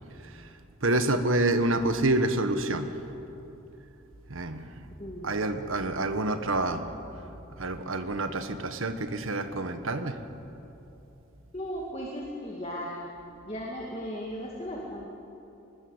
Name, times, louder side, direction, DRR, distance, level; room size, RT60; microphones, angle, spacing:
voice 1, 0.8-3.0 4.3-4.7 5.2-6.9 7.6-10.2, right 2 dB, 75° right, 8 dB, 1.6 m, -28 dB
voice 2, 5.0-5.4 11.5-13.0 13.4-15.1, equal, 30° left, -2 dB, 2.2 m, -36 dB
22.5 x 20.5 x 8.1 m, 2.9 s
head